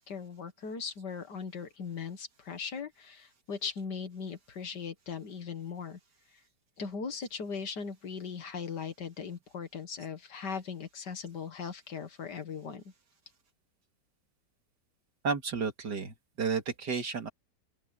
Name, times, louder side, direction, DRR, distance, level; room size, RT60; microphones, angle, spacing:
voice 1, 0.0-6.0 6.8-12.8, left 6 dB, 65° left, 2.3 m, -39 dB
voice 2, 15.2-17.3, right 5 dB, 65° right, 2.8 m, -32 dB
open air
omnidirectional pair, 1.9 m